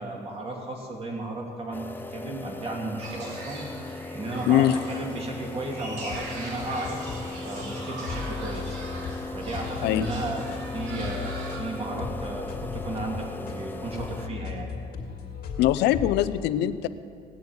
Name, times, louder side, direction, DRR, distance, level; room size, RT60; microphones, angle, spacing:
voice 1, 0.0-3.6 3.9-7.0 7.4-8.8 9.3-10.5 10.7-14.7, right 2 dB, 35° right, 0 dB, 2.7 m, -34 dB
sound 1, 1.7-14.3, left 2 dB, 10° left, 0.6 m, -38 dB
sound 2, 3.0-11.6, right 2 dB, 90° right, 4.0 m, -41 dB
voice 2, 4.5-4.8 9.8-10.1 15.6-16.9, left 13 dB, 85° left, 13 dB, 0.6 m, -22 dB
sound 3, 5.9-16.3, left 6 dB, 60° left, 2.4 m, -38 dB
17.5 x 6.9 x 9.5 m, 2.3 s
cardioid pair, 110°, 17 cm